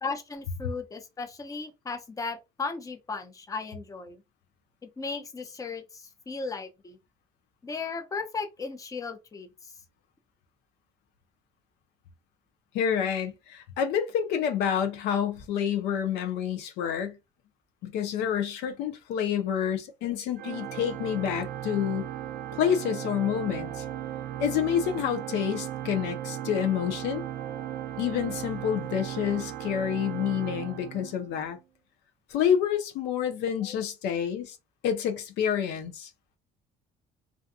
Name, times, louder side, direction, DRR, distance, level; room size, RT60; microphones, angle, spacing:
voice 1, 0.0-4.2 5.0-7.0 7.6-9.7 20.0-20.1 33.6-33.8, left 4 dB, 20° left, 0.6 m, -36 dB
voice 2, 12.7-17.2 17.8-22.1 22.5-23.8 24.4-27.2 28.0-31.6 32.3-34.6 34.8-36.1, left 8 dB, 85° left, 0.6 m, -28 dB
Organ, 20.4-31.5, right 11 dB, 75° right, 0.5 m, -36 dB
2.5 x 2.2 x 2.6 m
cardioid pair, 110°, 17 cm